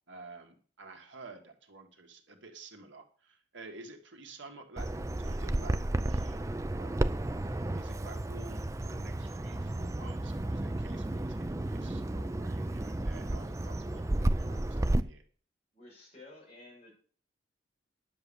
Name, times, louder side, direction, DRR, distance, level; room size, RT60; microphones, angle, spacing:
voice 1, 0.1-15.2, right 3 dB, 80° right, 4 dB, 1.9 m, -51 dB
Bird vocalization bird call bird song, 4.8-15.0, right 1 dB, 15° right, 0.4 m, -32 dB
voice 2, 15.7-16.9, left 2 dB, 35° left, -4 dB, 7.3 m, -52 dB
10.5 x 6.9 x 7.0 m, 0.44 s
head